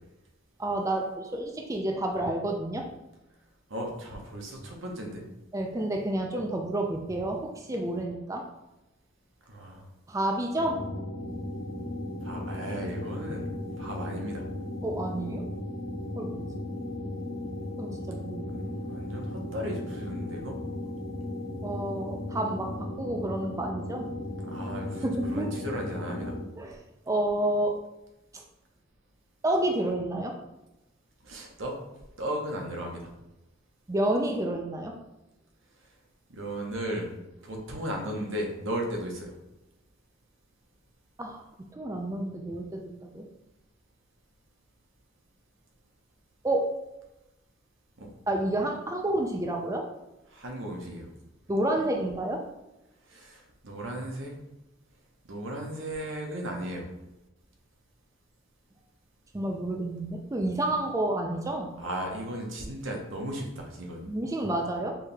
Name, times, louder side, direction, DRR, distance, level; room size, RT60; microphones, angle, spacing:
voice 1, 0.6-2.9 5.5-8.5 10.1-10.8 14.8-15.5 16.2-16.5 17.8-18.6 21.6-24.1 25.0-25.5 26.6-26.8 27.1-27.8 29.4-30.3 33.9-35.0 41.2-41.4 41.7-43.3 46.4-46.7 48.3-49.9 51.5-52.4 59.3-61.8 64.1-65.0, right 1 dB, 15° right, 2 dB, 0.4 m, -30 dB
voice 2, 3.7-5.2 9.5-9.8 12.2-13.5 13.8-14.4 18.5-20.6 24.5-26.3 31.2-31.8 32.2-33.1 36.3-37.1 37.4-39.3 48.0-48.1 50.3-51.1 53.1-54.4 55.2-56.9 61.8-64.1, right 1 dB, 80° right, 0 dB, 1.0 m, -36 dB
sound 1, 10.6-26.4, left 1 dB, 35° left, 0.7 m, -36 dB
4.7 x 2.8 x 3.3 m, 0.95 s
head